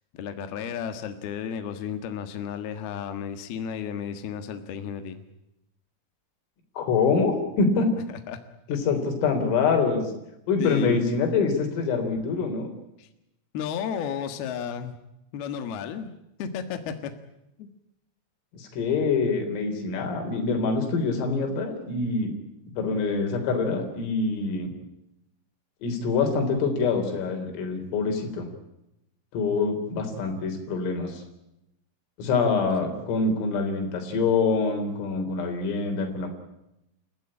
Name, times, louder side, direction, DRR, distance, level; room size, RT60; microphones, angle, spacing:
voice 1, 0.1-5.2 8.3-8.4 8.9-9.0 10.6-11.1 13.0-13.1 13.5-15.0 15.3-16.1 16.4-17.1 17.6-17.7, left 8 dB, 60° left, 8 dB, 3.1 m, -33 dB
voice 2, 6.8-7.9 8.7-10.1 10.5-12.7 18.5-22.3 22.8-24.7 25.8-28.5 29.3-31.2 32.2-36.3, left 4 dB, 85° left, 4 dB, 6.3 m, -25 dB
29.5 x 15.5 x 8.7 m, 0.86 s
omnidirectional pair, 5.7 m